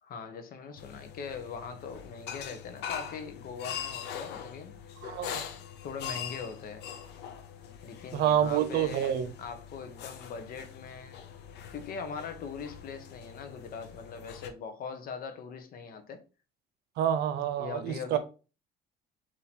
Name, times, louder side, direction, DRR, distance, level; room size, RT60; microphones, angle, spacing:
voice 1, 0.0-4.8 5.8-6.8 7.8-11.3 11.7-16.2 17.6-18.2, left 5 dB, 60° left, 1.0 m, -41 dB
sound 1, 0.8-14.5, left 8 dB, 80° left, 0.7 m, -43 dB
voice 2, 5.0-5.4 8.1-9.3 17.0-18.2, right 10 dB, 75° right, 0.7 m, -28 dB
4.3 x 3.0 x 4.1 m
cardioid pair, 110°, 17 cm